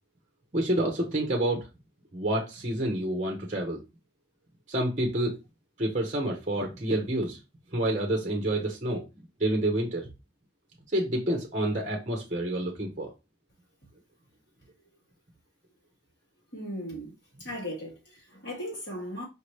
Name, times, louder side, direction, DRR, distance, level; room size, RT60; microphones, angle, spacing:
voice 1, 0.5-1.7 2.1-3.8 4.7-5.4 5.8-7.4 7.7-9.0 9.4-10.1 10.9-13.1, right 1 dB, 35° right, 0.8 m, -28 dB
voice 2, 16.5-17.1 17.4-19.2, equal, 60° left, 2.3 m, -37 dB
5.1 x 2.8 x 3.1 m
head